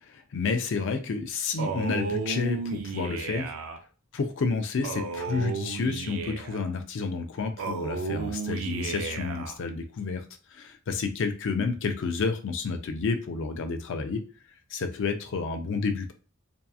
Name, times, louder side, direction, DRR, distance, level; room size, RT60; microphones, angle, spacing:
voice 1, 0.0-3.5 4.1-10.2 10.5-14.2 14.7-16.1, left 4 dB, 60° left, 7 dB, 0.4 m, -30 dB
Male speech man speaking, 1.6-3.8 4.8-6.7 7.6-9.6, right 4 dB, 70° right, 0.4 m, -33 dB
2.7 x 2.3 x 2.3 m, 0.38 s
head